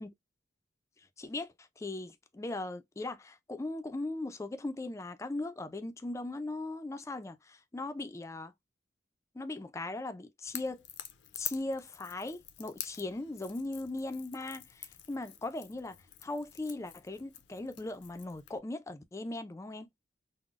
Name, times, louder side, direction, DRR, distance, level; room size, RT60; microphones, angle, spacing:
voice 1, 1.2-8.5 9.3-10.8 11.3-19.9, left 2 dB, 15° left, 0.3 m, -39 dB
Crackle / Crack, 10.5-18.6, left 11 dB, 75° left, 0.5 m, -47 dB
3.7 x 2.0 x 2.3 m
head